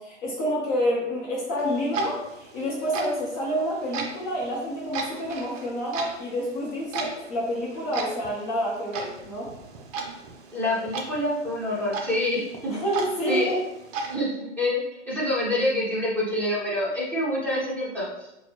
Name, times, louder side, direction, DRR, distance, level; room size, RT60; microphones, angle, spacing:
voice 1, 0.0-9.5 12.7-13.6, equal, 35° left, -4 dB, 0.9 m, -28 dB
Clock, 1.6-14.1, right 4 dB, 30° right, 0.5 m, -37 dB
voice 2, 10.5-12.8 13.3-13.6 14.0-18.1, left 1 dB, 5° left, -8 dB, 1.2 m, -27 dB
4.0 x 2.2 x 3.0 m, 0.91 s
figure-of-eight pair, 115°, 36 cm